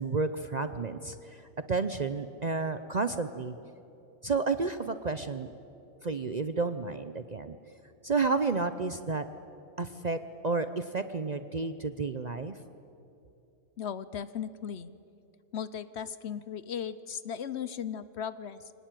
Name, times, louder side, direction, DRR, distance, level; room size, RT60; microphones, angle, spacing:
voice 1, 0.0-3.6 4.2-5.5 6.0-7.6 8.0-9.2 9.8-10.2 10.4-12.6, right 4 dB, 40° right, 10 dB, 0.6 m, -31 dB
voice 2, 13.8-14.9 15.5-18.7, left 8 dB, 60° left, 15 dB, 0.9 m, -37 dB
24.5 x 18.5 x 9.1 m, 2.7 s
omnidirectional pair, 1.4 m